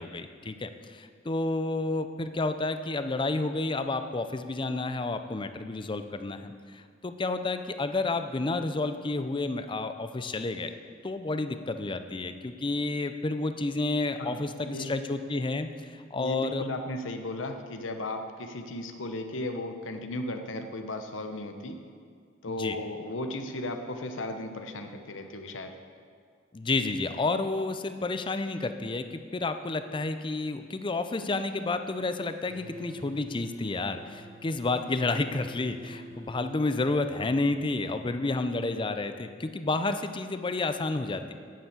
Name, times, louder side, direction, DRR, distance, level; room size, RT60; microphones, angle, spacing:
voice 1, 0.0-10.7 11.0-15.7 16.1-16.6 22.5-22.8 26.5-29.1 29.3-41.3, left 3 dB, 25° left, 9 dB, 0.5 m, -30 dB
voice 2, 14.2-15.0 16.1-21.8 22.4-25.7, left 1 dB, 85° left, 6 dB, 0.9 m, -36 dB
sound 1, 32.5-37.4, right 2 dB, 45° right, 1.3 m, -48 dB
9.2 x 7.1 x 8.1 m, 2.2 s
head